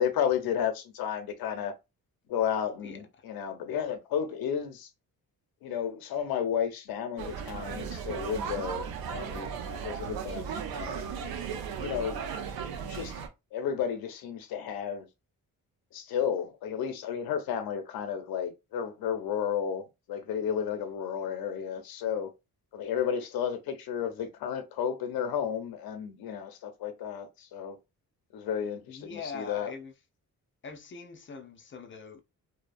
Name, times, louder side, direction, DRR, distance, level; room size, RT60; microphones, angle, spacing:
voice 1, 0.0-1.7 2.3-4.9 5.6-11.1 11.8-12.3 12.9-13.2 13.5-15.1 15.9-22.3 22.7-27.8 28.3-29.7, left 8 dB, 85° left, 0.6 m, -32 dB
sound 1, 7.2-13.3, right 7 dB, 80° right, 0.5 m, -36 dB
voice 2, 28.9-29.9 30.6-32.2, left 5 dB, 35° left, 0.4 m, -42 dB
2.7 x 2.0 x 2.4 m
cardioid pair, 95°, 35 cm